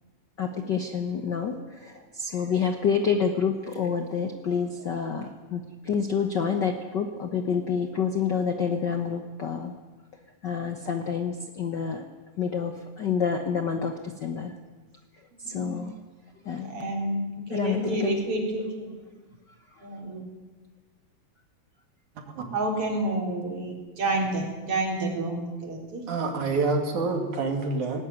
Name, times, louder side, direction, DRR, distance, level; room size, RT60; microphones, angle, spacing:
voice 1, 0.4-9.7 10.4-12.0 12.4-14.5 15.4-15.9 16.5-16.7 17.5-18.2, left 6 dB, 85° left, 6 dB, 0.9 m, -28 dB
voice 2, 15.4-15.8 16.7-17.2 17.5-18.9 19.8-20.2 22.5-26.0, right 2 dB, 40° right, 1 dB, 4.5 m, -29 dB
voice 3, 22.2-22.6 26.1-28.0, right 3 dB, 65° right, 4 dB, 3.8 m, -27 dB
19.0 x 18.0 x 9.5 m, 1.3 s
omnidirectional pair, 3.8 m